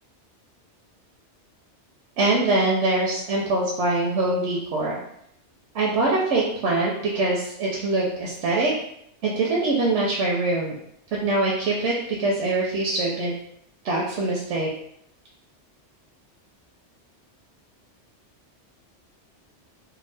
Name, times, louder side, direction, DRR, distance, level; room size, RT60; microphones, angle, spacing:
voice 1, 2.2-5.0 5.7-8.7 9.2-10.8 11.1-13.3 13.8-14.7, right 2 dB, 80° right, -3 dB, 0.9 m, -23 dB
2.6 x 2.3 x 3.3 m, 0.75 s
omnidirectional pair, 1.2 m